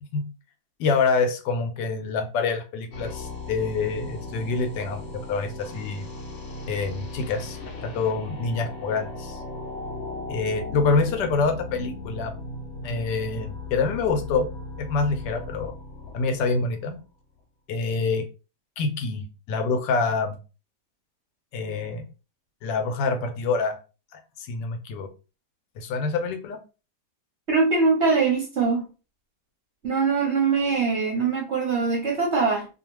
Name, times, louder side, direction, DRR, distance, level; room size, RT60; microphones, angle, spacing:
voice 1, 0.8-6.1 6.7-9.4 10.3-12.3 12.8-14.5 14.8-15.7 16.1-17.0 17.7-18.2 18.8-20.4 21.5-22.0 22.6-23.8 24.5-25.1 25.8-26.6, left 4 dB, 80° left, 1.2 m, -26 dB
sound 1, 2.9-17.0, left 2 dB, 60° left, 0.8 m, -37 dB
voice 2, 27.5-28.9 29.8-32.7, right 4 dB, 55° right, 0.8 m, -22 dB
2.7 x 2.3 x 3.0 m
omnidirectional pair, 1.8 m